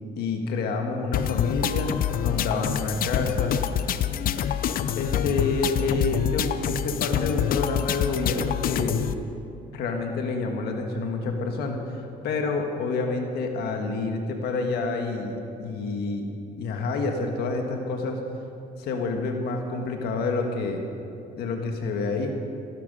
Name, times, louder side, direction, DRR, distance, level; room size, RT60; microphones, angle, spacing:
voice 1, 0.1-1.9 2.2-3.5 4.9-9.0 9.7-16.3 16.6-18.2 18.8-20.8 21.3-22.3, left 3 dB, 75° left, 3 dB, 1.5 m, -28 dB
sound 1, 1.1-9.1, left 9 dB, 60° left, 0.6 m, -26 dB
15.0 x 13.0 x 5.4 m, 2.6 s
cardioid pair, 110°, 17 cm